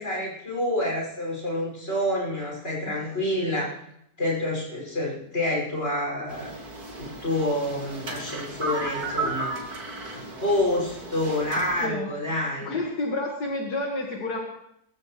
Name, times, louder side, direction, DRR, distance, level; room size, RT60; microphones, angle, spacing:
voice 1, 0.0-3.7 4.2-6.5 7.0-9.5 10.1-12.7, left 1 dB, 40° left, -3 dB, 6.4 m, -28 dB
sound 1, 6.3-11.9, right 3 dB, 70° right, 3.0 m, -34 dB
voice 2, 12.6-14.4, left 2 dB, 80° left, -1 dB, 2.4 m, -29 dB
24.0 x 14.5 x 3.2 m, 0.76 s
omnidirectional pair, 1.7 m